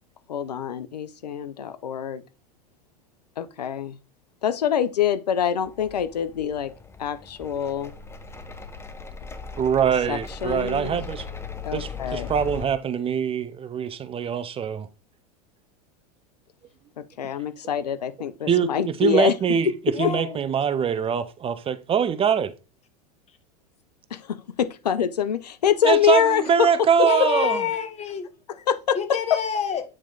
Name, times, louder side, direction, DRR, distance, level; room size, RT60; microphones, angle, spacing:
voice 1, 0.3-2.2 3.4-4.0 4.4-6.7 7.0-7.9 10.1-11.0 11.6-12.3 17.0-19.4 24.1-26.7 27.0-27.1 28.5-29.0 29.3-29.4, left 9 dB, 90° left, 0.7 m, -25 dB
sound 1, 5.6-12.7, left 5 dB, 10° left, 1.1 m, -38 dB
voice 2, 9.6-11.2 11.7-14.9 18.5-19.7 20.0-22.5 25.8-27.6, right 8 dB, 25° right, 0.7 m, -23 dB
voice 3, 19.9-20.4 27.0-28.3 29.0-29.8, left 7 dB, 35° left, 1.6 m, -27 dB
8.9 x 4.5 x 3.9 m
hypercardioid pair, 95°, 20 cm